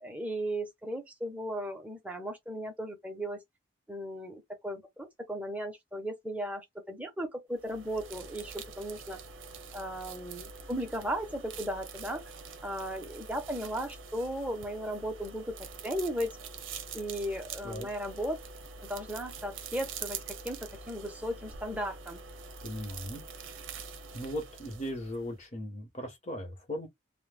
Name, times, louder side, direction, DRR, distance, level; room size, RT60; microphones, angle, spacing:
voice 1, 0.0-3.4 3.9-9.2 9.7-12.3 12.6-16.4 16.9-18.4 18.8-22.2, equal, 5° right, 0.6 m, -36 dB
sound 1, 7.6-25.4, right 5 dB, 70° right, 0.5 m, -45 dB
voice 2, 22.6-23.2 24.1-26.9, equal, 35° left, 0.8 m, -38 dB
2.1 x 2.0 x 3.2 m
head